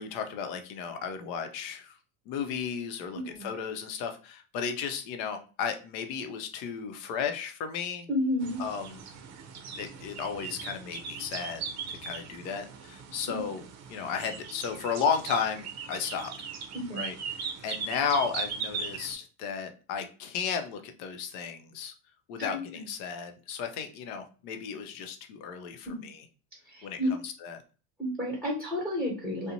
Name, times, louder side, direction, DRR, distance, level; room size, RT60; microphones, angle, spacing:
voice 1, 0.0-2.0 2.3-8.1 8.6-9.0 9.8-13.6 13.9-16.3 16.9-21.9 22.3-26.2 26.8-27.6, left 6 dB, 80° left, 6 dB, 0.7 m, -34 dB
voice 2, 3.1-3.5 8.1-8.6 13.3-13.4 16.7-17.0 22.4-22.9 25.9-26.1 26.6-27.1 28.0-29.5, left 1 dB, ahead, -5 dB, 1.1 m, -31 dB
sound 1, 8.4-19.1, right 6 dB, 40° right, 0.5 m, -39 dB
2.5 x 2.1 x 2.8 m, 0.36 s
supercardioid pair, 110°, 41 cm